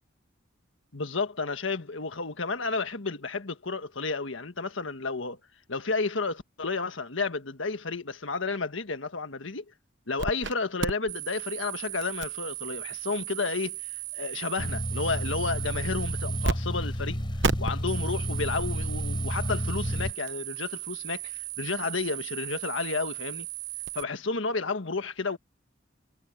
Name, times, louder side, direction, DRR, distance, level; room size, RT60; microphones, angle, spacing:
voice 1, 0.9-5.4 5.7-9.6 10.1-13.8 14.1-17.2 17.6-23.5 23.9-25.4, left 4 dB, 80° left, 1.6 m, -31 dB
sound 1, 10.2-10.5 10.8-16.5 16.8-16.9 17.4-24.0, right 7 dB, 65° right, 0.9 m, -35 dB
sound 2, 14.6-20.1, equal, 25° left, 4.1 m, -31 dB
head